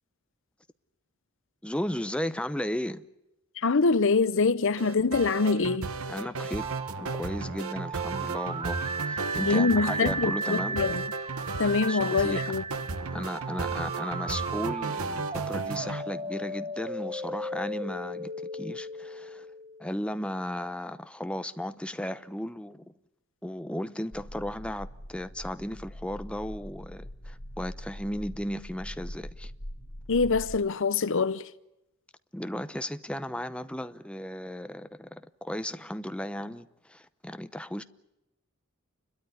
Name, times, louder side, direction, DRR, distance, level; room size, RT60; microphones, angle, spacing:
voice 1, 1.6-3.1 6.1-6.7 7.0-10.8 11.9-12.4 13.1-19.5 19.8-22.9 23.4-29.5 32.3-37.8, left 1 dB, 5° left, 0.8 m, -35 dB
voice 2, 3.6-5.9 9.5-11.0 11.6-12.6 30.1-31.5, left 4 dB, 65° left, 0.8 m, -25 dB
sound 1, 4.8-16.0, right 3 dB, 85° right, 1.2 m, -35 dB
sound 2, 6.6-20.4, right 3 dB, 25° right, 1.0 m, -36 dB
sound 3, 24.1-30.6, equal, 80° left, 2.6 m, -42 dB
30.0 x 13.0 x 9.7 m
head